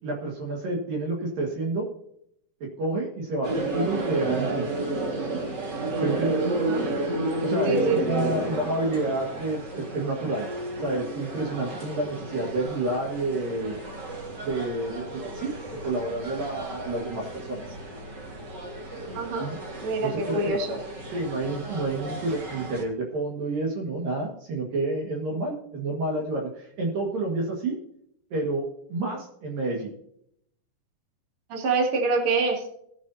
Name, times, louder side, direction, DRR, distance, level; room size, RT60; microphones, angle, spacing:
voice 1, 0.0-1.9 2.8-4.7 6.0-6.4 7.4-10.5 10.8-13.8 14.4-15.5 15.8-17.7 19.4-19.6 20.0-20.6 21.1-27.7 28.3-28.6 28.9-29.9, right 2 dB, 60° right, -1 dB, 3.1 m, -29 dB
sound 1, 3.4-22.8, right 2 dB, 75° right, 0.9 m, -32 dB
voice 2, 6.5-6.8 7.6-8.1 19.1-19.4 19.8-20.8 31.5-32.6, right 3 dB, 40° right, -1 dB, 2.5 m, -25 dB
18.0 x 9.6 x 2.8 m, 0.72 s
omnidirectional pair, 5.2 m